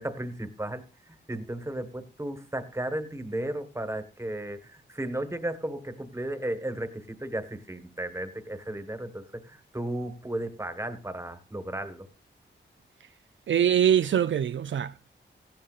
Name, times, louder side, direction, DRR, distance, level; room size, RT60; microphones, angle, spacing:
voice 1, 0.0-12.1, right 1 dB, 15° right, 1.4 m, -34 dB
voice 2, 13.5-15.1, right 9 dB, 70° right, 0.4 m, -23 dB
16.0 x 11.5 x 2.4 m
wide cardioid pair, 100°, 20 cm